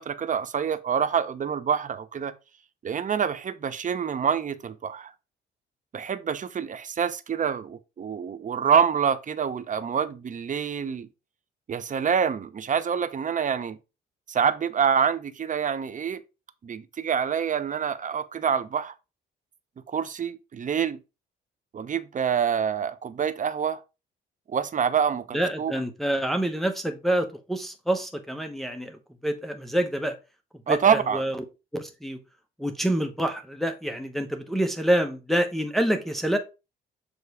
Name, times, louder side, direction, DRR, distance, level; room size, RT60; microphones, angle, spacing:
voice 1, 0.0-2.3 2.8-5.1 5.9-11.1 11.7-13.8 14.3-16.2 16.6-18.9 19.9-21.0 21.7-23.8 24.5-25.8 30.7-31.2, right 7 dB, 40° right, 0.8 m, -26 dB
voice 2, 25.3-30.2 30.7-31.4 31.7-32.2 32.6-36.4, right 1 dB, ahead, 0.9 m, -27 dB
6.9 x 3.2 x 4.7 m
cardioid pair, 90°, 20 cm